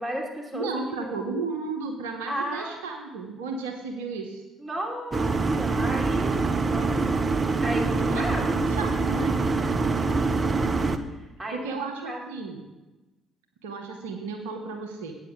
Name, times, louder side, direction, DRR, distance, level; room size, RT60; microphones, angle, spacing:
voice 1, 0.0-1.1 2.3-2.7 4.6-7.2 7.6-8.6 11.1-12.2, right 1 dB, 20° right, -1 dB, 3.1 m, -34 dB
voice 2, 0.5-4.4 8.0-9.3 11.5-12.6 13.6-15.1, right 4 dB, 85° right, 3 dB, 0.9 m, -33 dB
sound 1, 5.1-11.0, right 3 dB, 35° right, 0.8 m, -25 dB
8.8 x 6.7 x 6.5 m, 1.1 s
hypercardioid pair, 50°, 0 cm